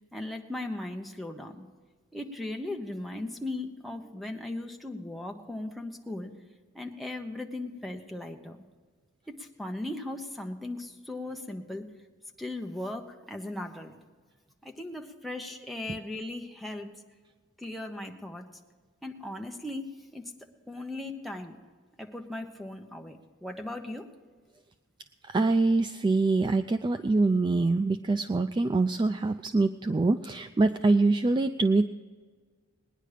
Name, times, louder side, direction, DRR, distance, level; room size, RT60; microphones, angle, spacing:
voice 1, 0.1-1.7 2.1-6.3 6.7-8.6 9.4-11.9 12.4-13.9 14.6-16.9 17.6-18.5 19.0-20.3 20.7-21.6 22.0-24.1, left 2 dB, ahead, 5 dB, 1.0 m, -38 dB
voice 2, 25.3-31.9, right 3 dB, 20° right, 8 dB, 0.3 m, -24 dB
19.5 x 10.0 x 5.0 m, 1.5 s
head